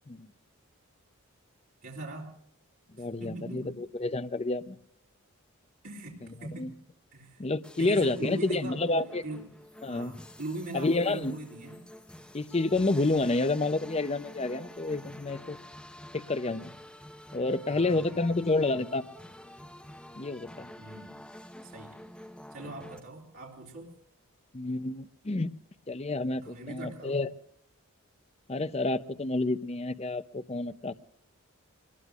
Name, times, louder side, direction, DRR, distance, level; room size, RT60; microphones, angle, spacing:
voice 1, 1.8-2.3 3.0-3.8 5.8-6.7 7.1-7.4 7.8-9.4 9.9-11.8 17.7-18.5 20.8-21.2 21.6-22.0 22.5-23.9 26.4-27.2, right 2 dB, 65° right, -4 dB, 3.2 m, -41 dB
voice 2, 3.0-4.8 6.6-6.7 7.4-9.2 9.8-10.1 10.7-11.3 12.3-15.6 16.1-16.7 17.3-19.0 20.2-20.7 24.5-25.5 25.9-27.3 28.5-30.9, left 2 dB, 30° left, 13 dB, 0.6 m, -29 dB
sound 1, 7.6-23.0, left 1 dB, 5° left, 0.9 m, -48 dB
24.5 x 20.5 x 2.5 m, 0.70 s
head